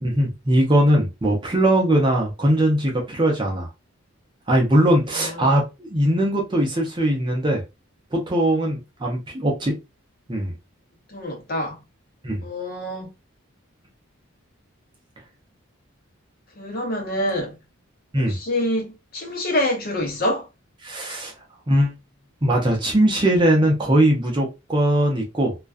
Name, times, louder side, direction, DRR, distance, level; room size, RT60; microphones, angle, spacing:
voice 1, 0.0-3.7 4.5-7.6 8.1-9.8 10.3-10.5 12.2-12.5 18.1-18.4 20.8-21.3 21.7-22.0 22.4-25.6, right 1 dB, 20° right, 0.5 m, -20 dB
voice 2, 11.1-11.8 12.4-13.1 16.6-17.6 18.2-20.4, left 1 dB, 45° left, 0.7 m, -26 dB
2.3 x 2.2 x 2.4 m
head